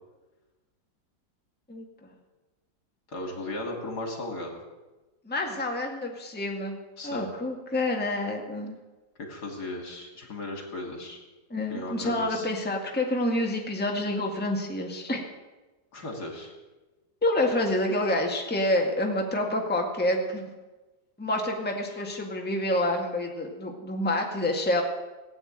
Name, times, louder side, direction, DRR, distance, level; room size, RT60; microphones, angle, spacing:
voice 1, 3.1-4.5 7.0-7.3 9.2-11.2 11.7-12.5 15.9-16.5, left 2 dB, 60° left, 2 dB, 3.1 m, -36 dB
voice 2, 5.3-6.8 7.0-8.8 11.5-15.2 17.2-20.5 21.2-24.8, left 1 dB, 5° left, 1 dB, 1.8 m, -28 dB
18.0 x 8.8 x 8.9 m, 1.2 s
omnidirectional pair, 2.0 m